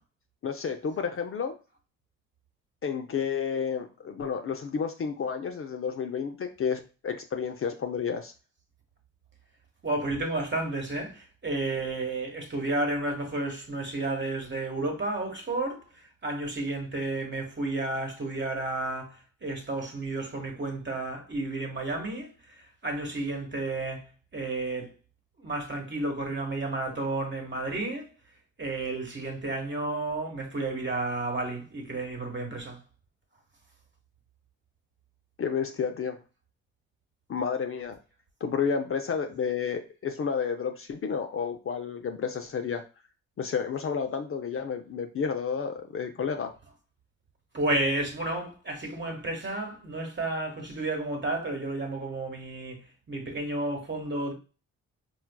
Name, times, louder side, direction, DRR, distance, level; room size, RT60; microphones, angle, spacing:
voice 1, 0.4-1.6 2.8-8.3 35.4-36.2 37.3-38.0 38.4-42.8 43.4-46.5, left 6 dB, 40° left, 0.5 m, -31 dB
voice 2, 9.8-19.2 19.4-22.3 22.6-24.1 24.3-24.9 25.4-28.1 28.6-32.8 47.5-52.8 53.1-54.3, right 2 dB, 35° right, 1.4 m, -31 dB
4.3 x 2.4 x 2.2 m
hypercardioid pair, 45°, 33 cm